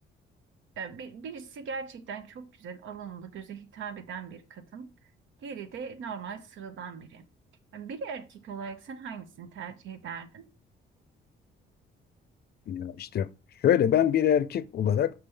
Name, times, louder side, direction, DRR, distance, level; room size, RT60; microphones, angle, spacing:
voice 1, 0.8-4.9 5.4-7.2 7.7-10.5, right 6 dB, 75° right, 0.9 m, -40 dB
voice 2, 12.7-13.3 13.6-15.1, left 9 dB, 55° left, 0.5 m, -24 dB
5.9 x 5.3 x 3.3 m
cardioid pair, 90°, 20 cm